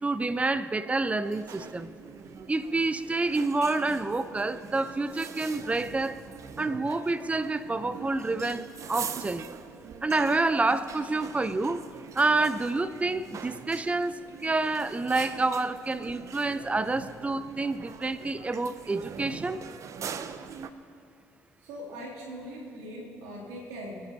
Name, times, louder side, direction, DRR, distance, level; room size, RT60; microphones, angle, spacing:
voice 1, 0.0-1.9 2.5-6.2 6.6-9.5 10.0-11.8 12.2-19.6, right 3 dB, 20° right, 14 dB, 0.7 m, -28 dB
sound 1, 1.2-20.7, right 7 dB, 55° right, 0.7 m, -43 dB
voice 2, 21.6-24.0, equal, 80° right, -6 dB, 3.2 m, -41 dB
25.5 x 10.5 x 2.9 m, 2.5 s
hypercardioid pair, 55°, 6 cm